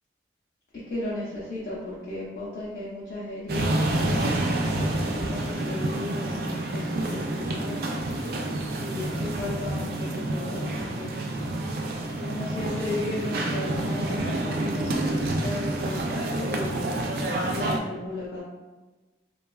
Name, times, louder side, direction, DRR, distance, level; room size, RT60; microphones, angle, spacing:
voice 1, 0.9-4.0 4.6-7.8 8.8-11.2 12.2-16.8 17.5-18.4, left 2 dB, 50° left, -8 dB, 0.5 m, -35 dB
sound 1, 3.5-17.8, right 1 dB, 55° right, 0.3 m, -28 dB
3.0 x 2.3 x 2.2 m, 1.2 s
head